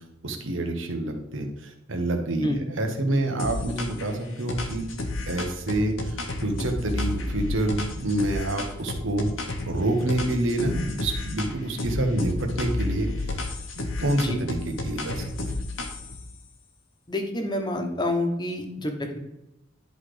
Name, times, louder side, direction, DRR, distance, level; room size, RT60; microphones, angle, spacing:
voice 1, 0.2-4.9 5.3-13.3 14.0-15.5, right 1 dB, 75° right, 4 dB, 1.4 m, -27 dB
sound 1, 3.4-4.1 4.5-9.8 10.1-11.5 11.8-16.2, left 2 dB, 85° left, 1.3 m, -31 dB
voice 2, 17.1-19.2, left 1 dB, 20° left, 4 dB, 1.2 m, -28 dB
11.0 x 4.1 x 5.1 m, 0.93 s
head